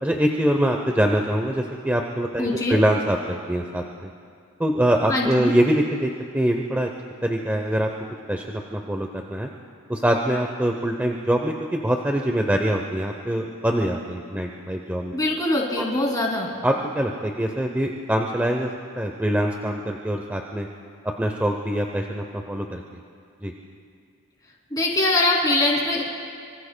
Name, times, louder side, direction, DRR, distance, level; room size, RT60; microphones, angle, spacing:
voice 1, 0.0-4.1 4.6-6.9 7.2-7.9 8.3-9.5 9.9-15.2 16.6-18.7 19.0-20.7 21.2-22.8 23.4-23.5, right 1 dB, 10° right, 2 dB, 0.7 m, -24 dB
voice 2, 2.4-2.8 5.1-5.5 15.1-16.5 24.7-26.1, left 2 dB, 15° left, -2 dB, 2.6 m, -22 dB
25.5 x 25.0 x 2.2 m, 2.3 s
head